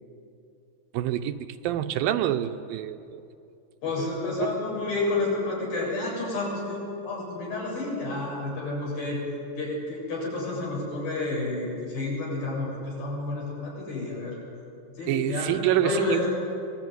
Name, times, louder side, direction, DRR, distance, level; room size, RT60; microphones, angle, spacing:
voice 1, 0.9-1.4 1.6-3.2 4.0-4.1 4.4-4.5 15.1-16.2, right 12 dB, 85° right, 8 dB, 2.6 m, -26 dB
voice 2, 3.8-9.2 9.6-14.4 15.0-16.2, left 2 dB, 85° left, -3 dB, 9.4 m, -30 dB
24.5 x 20.5 x 9.6 m, 2.7 s
omnidirectional pair, 4.1 m